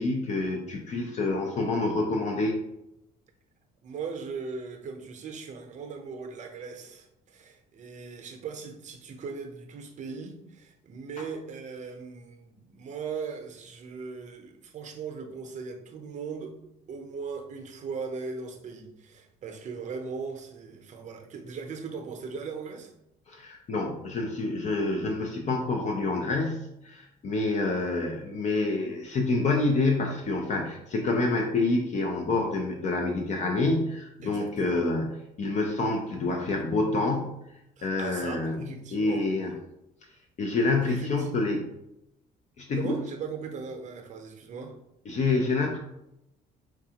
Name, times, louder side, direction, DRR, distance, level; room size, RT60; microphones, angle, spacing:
voice 1, 0.0-2.6 23.3-35.1 35.4-37.4 37.8-39.5 40.4-41.7 42.6-43.0 45.1-45.8, left 3 dB, 45° left, 2 dB, 0.5 m, -27 dB
voice 2, 3.8-16.5 16.9-22.9 34.2-34.9 37.8-39.3 40.8-41.4 42.7-44.7, right 5 dB, 45° right, 5 dB, 0.7 m, -39 dB
4.6 x 2.4 x 2.8 m, 0.84 s
cardioid pair, 110°, 17 cm